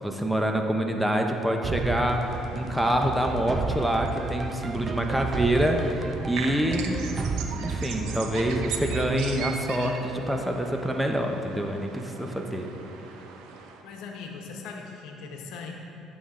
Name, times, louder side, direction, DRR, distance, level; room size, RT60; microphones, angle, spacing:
voice 1, 0.0-7.0 7.6-12.7, right 1 dB, 5° right, 3 dB, 1.0 m, -26 dB
sound 1, 1.6-10.5, right 4 dB, 35° right, 0.4 m, -33 dB
sound 2, 2.1-13.8, right 6 dB, 80° right, 0.8 m, -40 dB
voice 2, 13.8-15.7, left 5 dB, 75° left, 2 dB, 1.1 m, -39 dB
12.0 x 7.2 x 3.8 m, 2.8 s
supercardioid pair, 80°, 0 cm